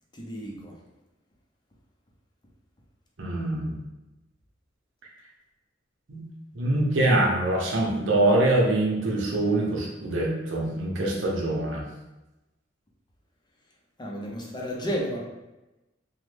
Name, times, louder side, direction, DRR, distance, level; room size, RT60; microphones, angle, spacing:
voice 1, 0.2-0.7 14.0-15.2, equal, 25° left, -1 dB, 0.5 m, -32 dB
voice 2, 3.2-3.8 6.1-6.2 6.5-11.8, right 2 dB, 85° right, -2 dB, 0.7 m, -24 dB
3.1 x 2.1 x 3.2 m, 1.0 s
head